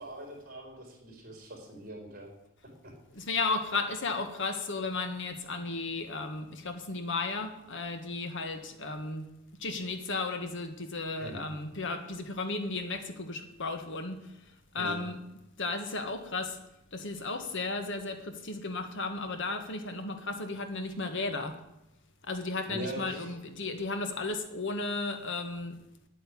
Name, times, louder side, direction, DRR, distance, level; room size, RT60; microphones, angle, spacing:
voice 1, 0.0-2.3 2.8-2.9 11.2-11.4 14.8-15.0 22.7-23.3, right 1 dB, 40° right, 1 dB, 4.3 m, -42 dB
voice 2, 3.1-9.3 9.6-15.2 15.6-16.6 16.9-21.6 22.2-25.8, left 3 dB, 55° left, 7 dB, 1.4 m, -34 dB
9.2 x 9.2 x 9.8 m, 0.88 s
head